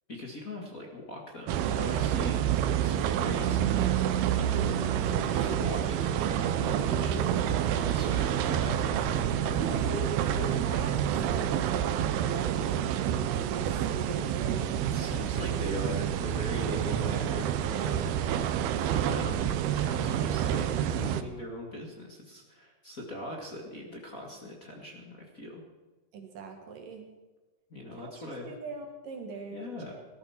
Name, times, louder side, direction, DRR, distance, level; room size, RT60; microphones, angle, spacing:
voice 1, 0.1-3.9 4.3-10.8 14.9-18.4 18.8-25.6 27.7-28.5 29.5-30.0, left 1 dB, 40° left, 0 dB, 1.3 m, -41 dB
sound 1, 1.5-21.2, right 10 dB, 75° right, 2.6 m, -28 dB
voice 2, 6.9-7.5 9.8-10.9 11.2-12.0 12.3-14.7 15.0-15.2 26.1-27.1 27.9-29.7 29.9-30.1, right 4 dB, 60° right, 3 dB, 3.0 m, -40 dB
18.0 x 13.0 x 5.9 m, 1.2 s
omnidirectional pair, 4.8 m